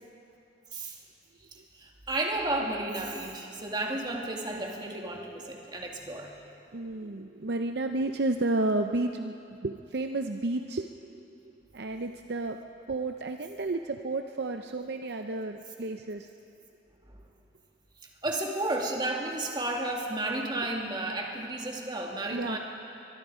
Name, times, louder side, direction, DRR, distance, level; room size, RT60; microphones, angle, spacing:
voice 1, 1.7-6.3 17.1-17.2 18.2-22.6, right 2 dB, 25° right, 0 dB, 2.3 m, -32 dB
voice 2, 6.7-9.3 9.6-12.6 12.9-16.3 22.3-22.6, right 2 dB, 60° right, 6 dB, 0.6 m, -32 dB
23.0 x 22.5 x 5.0 m, 2.7 s
head